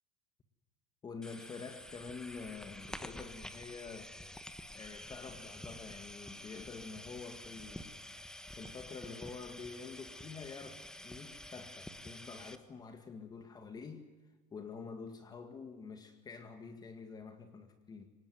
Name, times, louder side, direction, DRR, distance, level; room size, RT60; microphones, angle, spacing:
voice 1, 1.0-4.1 4.7-7.9 8.5-14.0 14.5-18.1, left 5 dB, 20° left, 8 dB, 2.0 m, -47 dB
sound 1, 1.2-12.6, left 1 dB, 5° left, 1.3 m, -49 dB
25.0 x 19.5 x 9.3 m, 1.3 s
cardioid pair, 150°, 18 cm